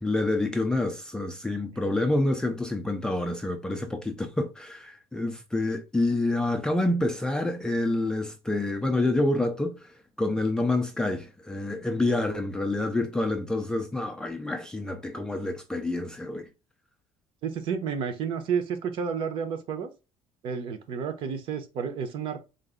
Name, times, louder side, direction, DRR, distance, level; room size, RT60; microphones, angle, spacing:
voice 1, 0.0-9.9 10.2-16.5, left 2 dB, 5° left, 0.4 m, -27 dB
voice 2, 17.4-19.9 20.4-22.4, right 6 dB, 50° right, 0.8 m, -31 dB
4.0 x 2.6 x 3.7 m
cardioid pair, 170°, 11 cm